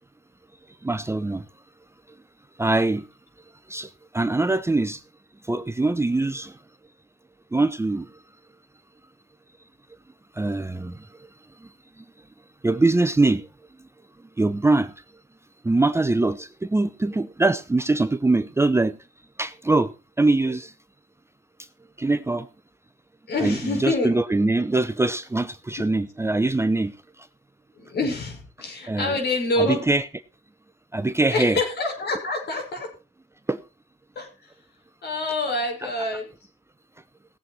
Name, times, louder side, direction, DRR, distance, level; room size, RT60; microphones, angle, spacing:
voice 1, 0.8-1.4 2.6-3.0 3.7-3.9 4.1-5.0 5.5-6.5 7.5-8.1 10.4-11.0 12.6-13.4 14.4-14.9 15.6-19.0 19.4-19.9 20.2-20.7 22.0-22.5 23.4-26.9 28.9-29.2 29.6-30.0 30.9-31.6 33.5-33.6, right 2 dB, 15° right, 0.7 m, -22 dB
voice 2, 23.3-24.1 27.8-29.9 31.3-32.9 34.2-34.5 35.0-36.3, left 2 dB, 55° left, 5.8 m, -26 dB
18.0 x 7.8 x 4.3 m
cardioid pair, 90°, 20 cm